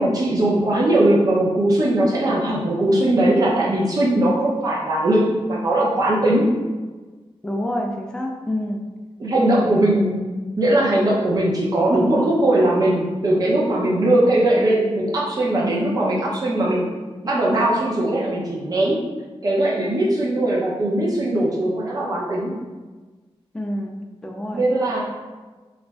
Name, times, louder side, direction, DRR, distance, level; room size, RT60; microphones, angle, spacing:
voice 1, 0.0-6.5 9.2-10.2 10.6-16.9 17.2-19.0 19.4-22.5 24.5-25.0, right 1 dB, 40° right, -4 dB, 0.7 m, -19 dB
voice 2, 7.4-8.8 9.5-10.0 23.5-24.6, left 1 dB, 5° left, 1 dB, 0.3 m, -28 dB
3.1 x 2.5 x 3.4 m, 1.3 s
wide cardioid pair, 165°, 10 cm